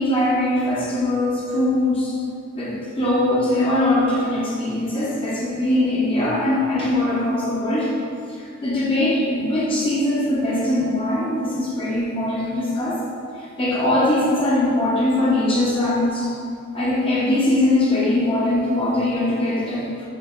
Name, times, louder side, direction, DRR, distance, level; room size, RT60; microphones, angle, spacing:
voice 1, 0.0-2.1 2.5-7.9 8.6-13.0 13.6-16.3 16.7-20.1, left 1 dB, 25° left, -8 dB, 0.7 m, -21 dB
5.1 x 2.6 x 3.8 m, 2.4 s
head